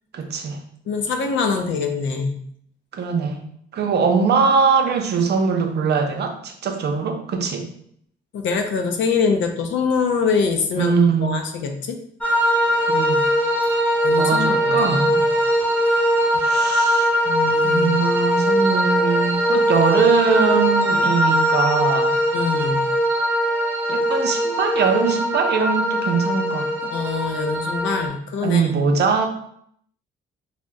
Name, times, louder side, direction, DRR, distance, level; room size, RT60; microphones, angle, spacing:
voice 1, 0.1-0.6 2.9-3.4 3.7-7.7 10.8-11.4 12.9-13.3 14.2-15.2 16.4-17.1 17.6-22.2 23.9-26.7 28.4-29.3, right 5 dB, 55° right, 4 dB, 0.5 m, -21 dB
voice 2, 0.9-2.4 8.3-10.9 11.2-12.0 14.0-15.2 17.3-18.0 22.3-22.8 26.8-28.7, left 5 dB, 70° left, 5 dB, 0.5 m, -24 dB
sound 1, 12.2-28.1, equal, 10° left, 0.9 m, -20 dB
2.7 x 2.0 x 3.4 m, 0.67 s
cardioid pair, 90°, 20 cm